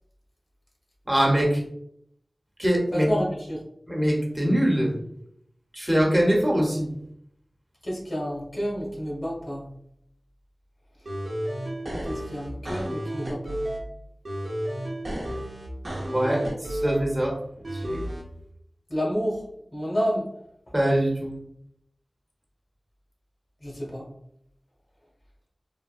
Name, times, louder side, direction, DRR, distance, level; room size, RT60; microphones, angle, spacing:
voice 1, 1.1-1.6 2.6-3.1 3.9-4.9 5.7-6.9 16.1-17.4 17.7-18.0 20.7-21.3, equal, 20° right, -1 dB, 0.9 m, -23 dB
voice 2, 2.9-3.6 7.8-9.6 12.0-13.6 18.9-19.4 19.7-20.2 23.6-24.1, equal, 60° left, -4 dB, 1.3 m, -29 dB
sound 1, 11.1-13.9 14.2-17.0 17.6-18.2, right 1 dB, 65° right, 0.8 m, -32 dB
3.5 x 2.2 x 2.4 m, 0.73 s
wide cardioid pair, 45°, 0 cm